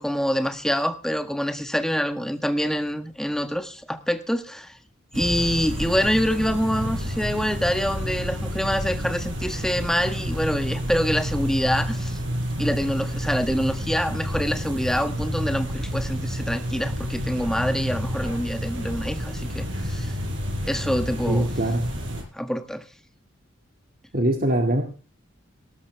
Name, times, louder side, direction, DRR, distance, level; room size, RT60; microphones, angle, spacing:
voice 1, 0.0-4.8 5.1-12.2 12.6-20.1 20.6-21.5 22.3-22.8, equal, 5° left, 9 dB, 1.5 m, -26 dB
sound 1, 5.1-22.2, equal, 70° right, 6.1 m, -29 dB
voice 2, 21.3-21.8 24.1-24.8, right 1 dB, 45° right, 4 dB, 2.3 m, -22 dB
19.0 x 12.0 x 3.4 m, 0.36 s
head